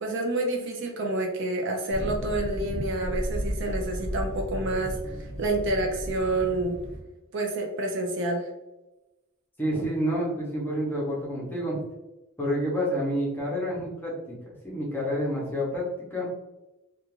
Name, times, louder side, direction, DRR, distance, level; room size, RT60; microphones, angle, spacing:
voice 1, 0.0-6.8 7.3-8.5, right 2 dB, 55° right, 2 dB, 0.4 m, -28 dB
sound 1, 1.9-7.0, equal, 30° right, 0.7 m, -33 dB
voice 2, 9.6-11.8 12.4-14.3 14.6-15.8 16.1-16.3, equal, 10° left, -5 dB, 0.7 m, -28 dB
2.4 x 2.3 x 3.0 m, 1.0 s
head